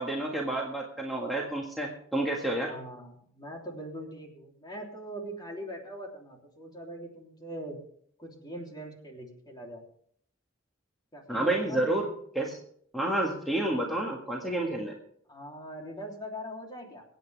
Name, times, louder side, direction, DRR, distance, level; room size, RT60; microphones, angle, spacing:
voice 1, 0.0-2.7 11.3-12.1 12.3-12.6 12.9-14.9, right 1 dB, ahead, -2 dB, 1.8 m, -29 dB
voice 2, 2.6-7.8 8.2-9.8 11.1-12.0 15.3-17.0, equal, 20° left, 0 dB, 3.4 m, -41 dB
25.0 x 9.2 x 3.5 m, 0.64 s
head